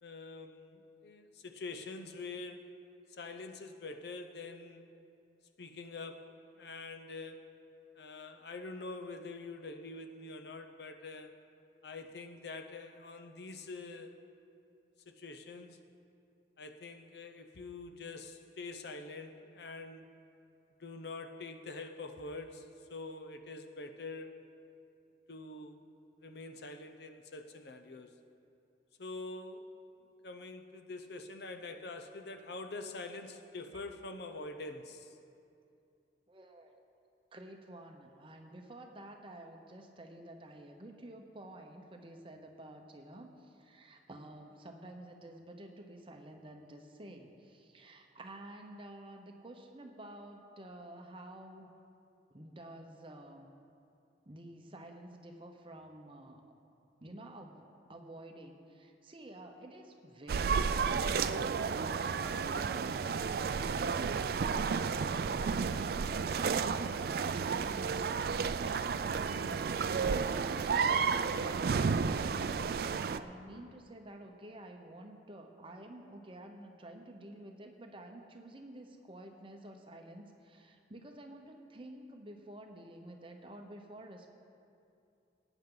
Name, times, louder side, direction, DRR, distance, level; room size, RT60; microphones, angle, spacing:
voice 1, 0.0-2.6 3.1-4.9 5.6-7.4 8.0-11.3 11.8-14.2 15.1-15.8 16.6-20.1 20.8-24.3 25.3-25.8 26.2-28.1 29.0-29.7 30.2-35.2, left 3 dB, 65° left, 7 dB, 0.7 m, -45 dB
voice 2, 36.3-36.8 37.3-51.7 52.3-53.5 54.3-56.5 57.0-64.6 65.2-69.0 69.9-72.7 73.0-84.4, right 1 dB, 30° right, 4 dB, 0.9 m, -50 dB
sound 1, 60.3-73.2, right 5 dB, 55° right, 0.3 m, -32 dB
18.5 x 9.1 x 3.9 m, 2.6 s
head